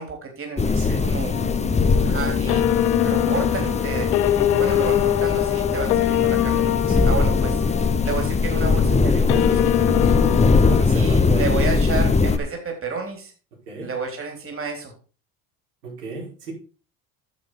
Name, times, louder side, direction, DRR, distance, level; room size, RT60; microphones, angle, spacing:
voice 1, 0.0-1.4 2.0-2.7 3.0-4.1 4.5-6.7 7.0-7.6 8.0-10.2 10.9-13.3 13.8-14.9, right 4 dB, 30° right, 3 dB, 3.8 m, -31 dB
sound 1, 0.6-12.4, left 4 dB, 15° left, 1.1 m, -21 dB
sound 2, 1.3-10.8, left 13 dB, 85° left, 0.9 m, -23 dB
voice 2, 10.7-11.6 13.7-13.9 15.8-16.5, right 2 dB, 90° right, -2 dB, 5.2 m, -33 dB
10.5 x 7.0 x 4.9 m, 0.36 s
hypercardioid pair, 80°, 45 cm